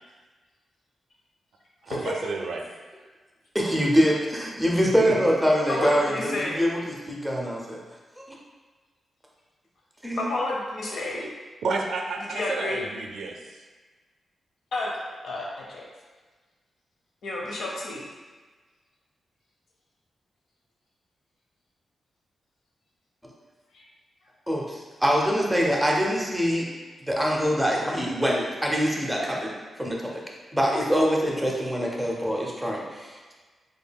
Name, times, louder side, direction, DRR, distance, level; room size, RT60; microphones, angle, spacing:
voice 1, 1.8-2.6 4.8-5.3 11.6-13.6, right 3 dB, 85° right, 2 dB, 0.4 m, -31 dB
voice 2, 3.5-7.8 8.2-8.3 10.0-10.3 24.5-26.7 27.1-30.2 30.5-33.3, equal, 5° right, -2 dB, 0.5 m, -24 dB
voice 3, 5.7-6.6 10.2-11.3 12.3-12.8 14.7-15.8 17.2-18.1 23.7-23.9, left 2 dB, 75° left, -3 dB, 0.7 m, -31 dB
3.6 x 3.5 x 2.2 m, 1.4 s
wide cardioid pair, 150°, 0 cm